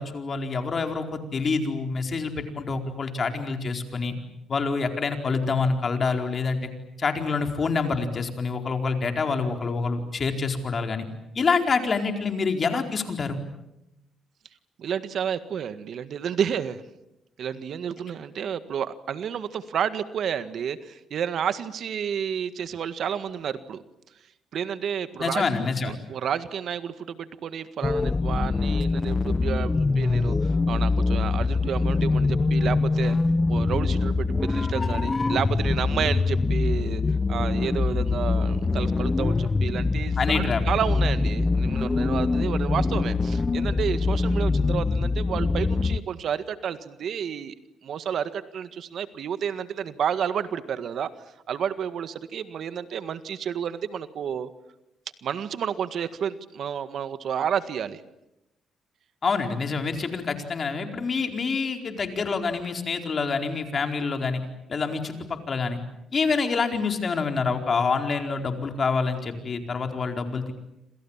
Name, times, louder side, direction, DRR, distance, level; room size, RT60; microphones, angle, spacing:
voice 1, 0.0-4.1 4.5-6.7 7.0-11.1 11.3-13.4 25.2-25.9 40.2-40.6 59.2-64.4 64.7-65.8 66.1-70.5, left 4 dB, 40° left, 5 dB, 4.5 m, -26 dB
voice 2, 14.8-16.8 17.4-23.8 24.5-25.5 25.8-33.2 33.5-37.0 37.3-47.5 47.8-51.1 51.5-54.5 55.2-58.0, right 8 dB, 65° right, 12 dB, 1.7 m, -30 dB
sound 1, 27.8-46.0, left 3 dB, 25° left, 0.9 m, -24 dB
28.0 x 27.0 x 7.4 m, 0.87 s
cardioid pair, 90°, 0 cm